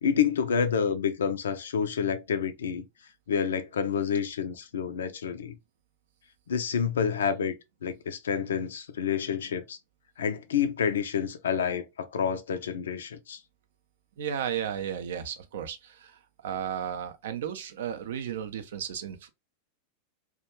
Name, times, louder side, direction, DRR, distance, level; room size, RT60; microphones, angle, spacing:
voice 1, 0.0-2.9 3.3-5.6 6.5-7.6 7.8-9.8 10.2-13.4, left 7 dB, 65° left, 0.3 m, -28 dB
voice 2, 14.2-19.3, right 9 dB, 60° right, 0.4 m, -34 dB
2.3 x 2.1 x 2.9 m
figure-of-eight pair, 90°, 0 cm